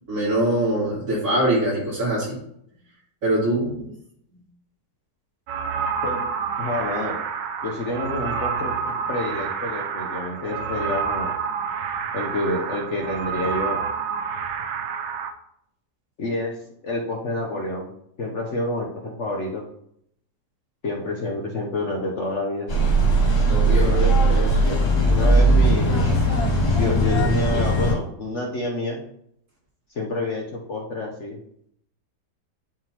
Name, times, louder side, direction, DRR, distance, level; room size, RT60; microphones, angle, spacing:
voice 1, 0.1-2.4 3.2-3.8 23.5-23.9, right 1 dB, 60° right, -7 dB, 3.4 m, -23 dB
sound 1, 5.5-15.3, right 6 dB, 80° right, 1.3 m, -28 dB
voice 2, 6.6-7.2 7.6-11.4 12.1-13.8 16.2-16.5 16.8-17.9 18.2-19.6 20.8-22.7 23.6-26.1 26.7-29.0 29.9-31.4, left 2 dB, 50° left, -1 dB, 1.0 m, -28 dB
sound 2, 22.7-27.9, right 1 dB, 75° left, 2.5 m, -19 dB
11.0 x 3.8 x 2.9 m, 0.72 s
omnidirectional pair, 1.9 m